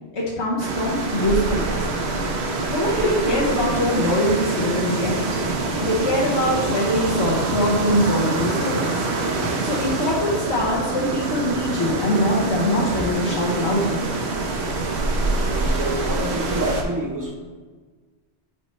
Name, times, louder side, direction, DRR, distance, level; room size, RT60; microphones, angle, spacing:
voice 1, 0.1-1.8 2.7-5.2 5.8-9.1 9.6-14.0, equal, 85° left, -6 dB, 1.4 m, -23 dB
sound 1, 0.6-16.8, right 2 dB, 80° right, 1.1 m, -25 dB
voice 2, 15.2-17.4, right 1 dB, 20° right, 0 dB, 0.8 m, -28 dB
11.0 x 4.3 x 3.1 m, 1.4 s
omnidirectional pair, 1.1 m